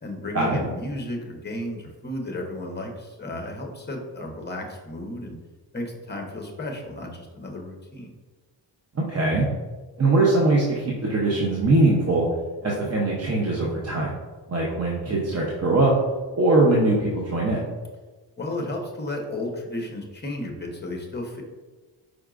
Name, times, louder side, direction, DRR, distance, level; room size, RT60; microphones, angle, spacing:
voice 1, 0.0-5.3 5.7-8.1 18.4-21.4, left 1 dB, 25° left, 2 dB, 0.9 m, -33 dB
voice 2, 8.9-9.4 10.0-12.3 12.6-14.1 14.5-15.9 16.3-17.6, right 2 dB, 35° right, -3 dB, 0.8 m, -21 dB
4.9 x 4.4 x 2.5 m, 1.3 s
cardioid pair, 95°, 44 cm